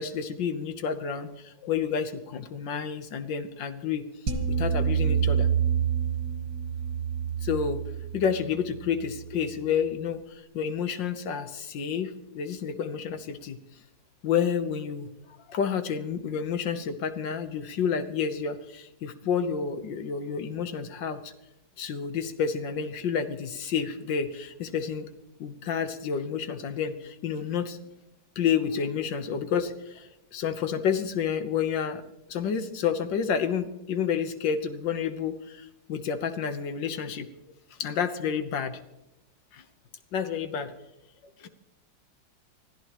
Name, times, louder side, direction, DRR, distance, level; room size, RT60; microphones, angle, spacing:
voice 1, 0.0-4.1 4.6-5.5 7.4-7.8 8.1-13.6 14.2-21.3 21.8-25.1 25.4-27.8 28.4-32.0 32.3-37.3 37.8-38.8 39.5-39.6 40.1-40.7 41.4-41.5, left 7 dB, 70° left, 9 dB, 1.7 m, -30 dB
sound 1, 4.3-9.5, right 7 dB, 50° right, 1.8 m, -28 dB
25.0 x 14.5 x 3.0 m, 0.91 s
omnidirectional pair, 2.1 m